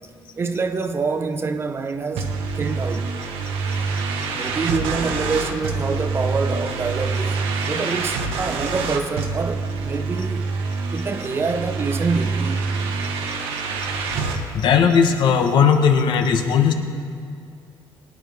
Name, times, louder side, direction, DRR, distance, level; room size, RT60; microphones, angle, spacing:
voice 1, 0.4-3.1 4.3-7.4 7.7-10.6 10.9-12.7, right 4 dB, 25° right, 0.6 m, -26 dB
sound 1, 2.2-14.4, right 4 dB, 85° right, 1.3 m, -26 dB
voice 2, 14.5-16.7, left 6 dB, 55° left, 1.1 m, -17 dB
22.0 x 9.5 x 3.5 m
cardioid pair, 140°, 9 cm